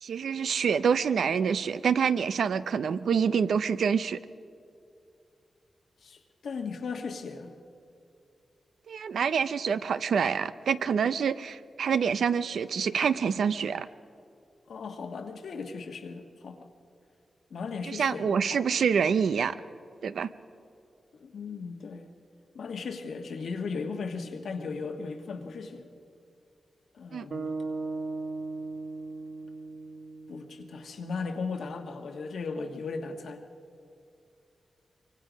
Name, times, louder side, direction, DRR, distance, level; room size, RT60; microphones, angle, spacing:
voice 1, 0.0-4.2 8.9-13.9 17.9-19.6 20.0-20.3 27.1-27.3, right 6 dB, 85° right, 13 dB, 0.6 m, -26 dB
voice 2, 6.0-7.5 14.7-16.7 17.5-18.6 21.1-22.1 22.5-25.9 26.9-27.5 30.3-33.4, left 4 dB, 85° left, 4 dB, 1.6 m, -37 dB
sound 1, 27.3-31.6, right 3 dB, 60° right, 1.2 m, -38 dB
24.0 x 24.0 x 5.2 m, 2.5 s
cardioid pair, 85°, 0 cm